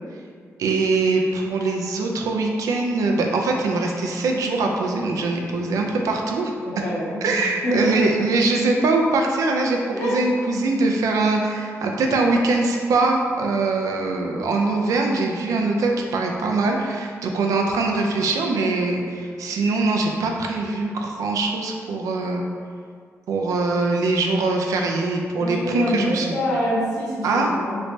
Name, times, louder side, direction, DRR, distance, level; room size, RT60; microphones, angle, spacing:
voice 1, 0.6-6.5 7.2-22.4 23.3-26.4 27.2-27.5, right 3 dB, 85° right, 1 dB, 0.4 m, -22 dB
voice 2, 6.6-8.0 9.9-10.2 25.4-27.8, equal, 75° left, -9 dB, 1.3 m, -25 dB
3.2 x 3.1 x 2.6 m, 2.1 s
cardioid pair, 80°, 6 cm